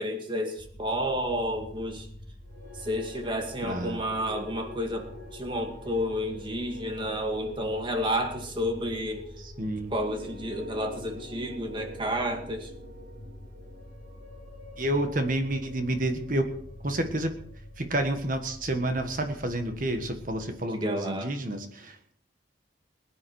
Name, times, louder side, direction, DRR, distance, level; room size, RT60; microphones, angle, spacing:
voice 1, 0.0-2.1 2.8-9.3 9.9-12.7 20.7-21.3, equal, 25° right, 4 dB, 2.1 m, -31 dB
sound 1, 0.6-20.5, left 1 dB, 70° left, 3.0 m, -47 dB
sound 2, 2.4-18.7, left 1 dB, 85° right, 4.1 m, -48 dB
voice 2, 3.6-4.0 9.4-9.9 14.8-16.5 16.8-17.3 17.8-22.1, right 1 dB, 45° right, 6 dB, 1.5 m, -29 dB
21.0 x 9.9 x 4.7 m, 0.63 s
head